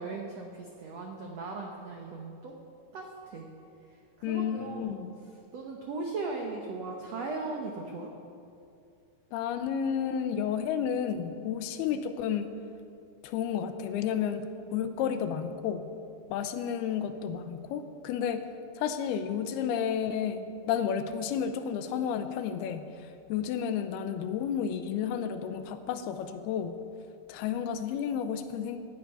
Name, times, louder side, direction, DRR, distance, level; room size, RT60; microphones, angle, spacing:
voice 1, 0.0-2.6 2.9-3.5 3.8-5.0 5.5-8.1, right 3 dB, 80° right, 1 dB, 1.4 m, -38 dB
voice 2, 4.2-5.1 9.3-12.5 13.2-15.8 16.3-18.4 18.8-26.8 27.3-28.8, left 8 dB, 85° left, 9 dB, 2.6 m, -31 dB
16.5 x 10.5 x 5.5 m, 2.5 s
omnidirectional pair, 4.6 m